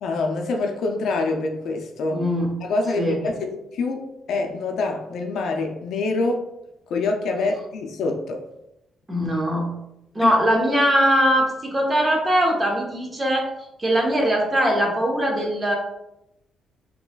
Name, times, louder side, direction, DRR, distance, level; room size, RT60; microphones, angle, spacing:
voice 1, 0.0-2.2 2.6-6.5 6.9-8.4 10.2-10.3, left 3 dB, 75° left, 3 dB, 0.5 m, -26 dB
voice 2, 2.1-2.5 3.0-3.3 9.1-9.7 10.1-13.5 13.8-15.7, equal, 25° right, 0 dB, 1.0 m, -21 dB
3.8 x 3.0 x 2.3 m, 0.87 s
cardioid pair, 90°, 0 cm